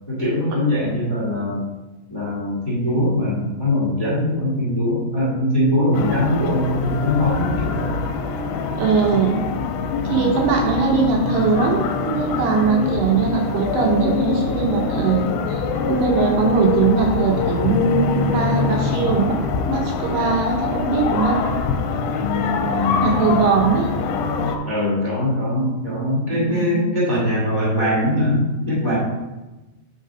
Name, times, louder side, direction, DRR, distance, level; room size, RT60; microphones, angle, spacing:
voice 1, 0.1-1.6 2.1-8.0 9.9-10.3 22.1-23.4 24.6-29.0, left 1 dB, 25° left, -8 dB, 0.5 m, -22 dB
sound 1, 5.9-24.6, left 5 dB, 90° left, 3.1 m, -24 dB
voice 2, 8.7-9.4 10.0-19.4 19.7-21.4 23.0-23.9 26.3-26.9, right 5 dB, 75° right, 0 dB, 2.6 m, -20 dB
9.1 x 4.0 x 4.8 m, 1.1 s
omnidirectional pair, 5.6 m